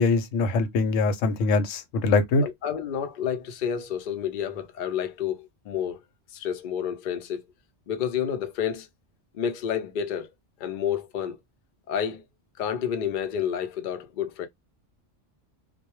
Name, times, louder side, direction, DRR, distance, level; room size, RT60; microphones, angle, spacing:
voice 1, 0.0-2.4, left 3 dB, 85° left, 0.9 m, -23 dB
voice 2, 2.4-6.0 6.3-7.4 7.9-8.9 9.3-10.3 10.6-11.4 11.9-12.2 12.6-14.5, left 8 dB, 60° left, 0.5 m, -30 dB
2.1 x 2.0 x 2.9 m
omnidirectional pair, 1.3 m